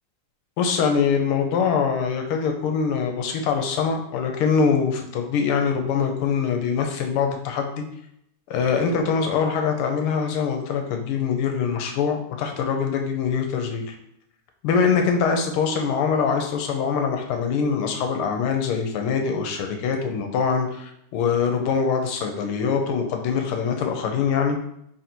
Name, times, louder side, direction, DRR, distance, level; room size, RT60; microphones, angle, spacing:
voice 1, 0.6-7.8 8.5-13.9 14.6-24.6, left 6 dB, 80° left, 4 dB, 1.6 m, -23 dB
3.7 x 2.6 x 4.3 m, 0.75 s
omnidirectional pair, 2.4 m